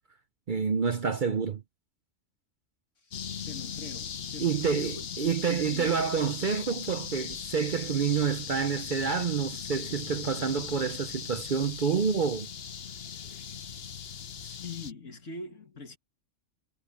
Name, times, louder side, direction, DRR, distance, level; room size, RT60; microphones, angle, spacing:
voice 1, 0.5-1.6 4.4-12.5, right 6 dB, 50° right, 0.7 m, -28 dB
sound 1, 3.1-14.9, left 7 dB, 55° left, 1.1 m, -39 dB
voice 2, 3.5-6.0 9.8-9.9 14.4-16.0, left 3 dB, 70° left, 2.6 m, -43 dB
omnidirectional pair, 1.3 m